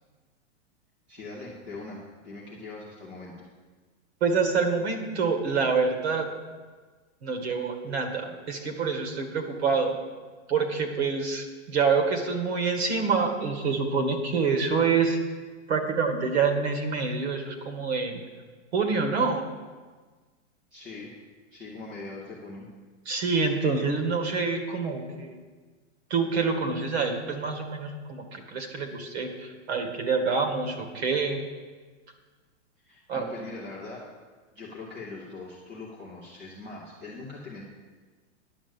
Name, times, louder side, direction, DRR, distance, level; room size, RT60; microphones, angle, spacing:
voice 1, 1.1-3.5 20.7-21.1 21.5-22.7 32.8-34.1 34.5-37.6, left 3 dB, 5° right, -7 dB, 0.4 m, -41 dB
voice 2, 4.2-6.3 7.2-10.0 10.5-15.2 15.7-18.2 18.7-19.5 23.1-25.4 26.1-31.4 33.1-33.2, right 5 dB, 60° right, 5 dB, 2.0 m, -26 dB
10.0 x 7.3 x 7.2 m, 1.4 s
supercardioid pair, 175°, 37 cm